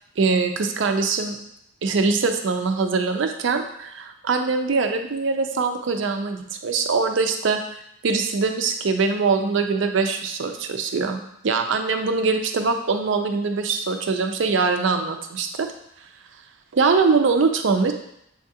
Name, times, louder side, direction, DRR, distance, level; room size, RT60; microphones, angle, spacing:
voice 1, 0.2-1.4 1.8-7.6 8.0-15.7 16.7-17.9, right 4 dB, 60° right, 5 dB, 0.4 m, -22 dB
7.0 x 2.4 x 2.7 m, 0.76 s
head